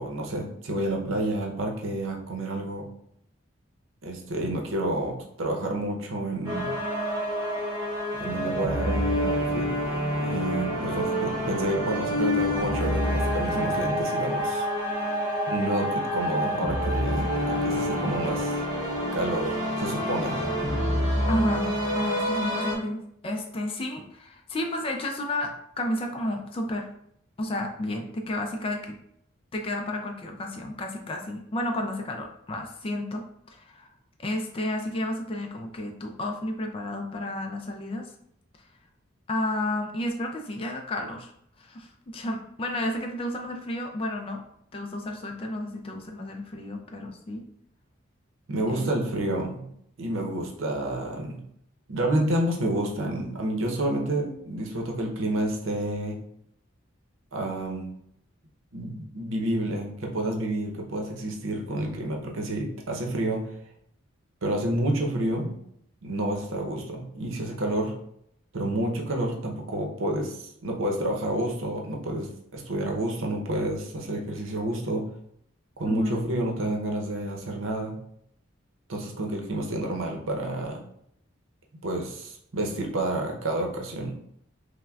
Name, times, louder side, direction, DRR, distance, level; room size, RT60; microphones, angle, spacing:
voice 1, 0.0-2.9 4.0-6.7 8.2-9.7 10.0-14.7 15.5-18.6 19.1-20.4 48.5-49.7 50.0-51.4 51.9-56.2 57.3-57.9 58.7-63.5 64.4-65.6 66.0-67.9 68.5-75.1 75.8-78.0 78.9-80.8 81.8-84.1, right 1 dB, 80° right, 1 dB, 0.7 m, -29 dB
sound 1, 6.4-22.8, equal, 20° right, 0.9 m, -27 dB
voice 2, 21.3-26.9 27.4-29.0 29.5-33.9 34.2-38.1 39.3-41.3 41.6-44.4 44.7-47.4 48.7-48.9 75.8-76.2, left 1 dB, 25° left, 3 dB, 0.3 m, -32 dB
5.6 x 2.1 x 2.3 m, 0.72 s
head